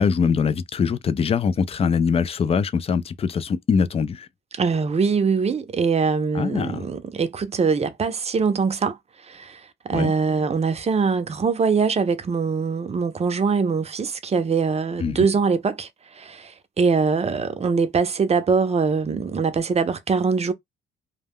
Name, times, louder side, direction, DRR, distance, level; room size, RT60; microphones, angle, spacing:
voice 1, 0.0-4.3 6.3-6.9 9.9-10.1 15.0-15.3, left 6 dB, 30° left, 0.3 m, -22 dB
voice 2, 4.6-9.0 9.3-9.6 9.8-20.5, right 5 dB, 30° right, 0.6 m, -23 dB
2.2 x 2.2 x 3.4 m
cardioid pair, 90°, 20 cm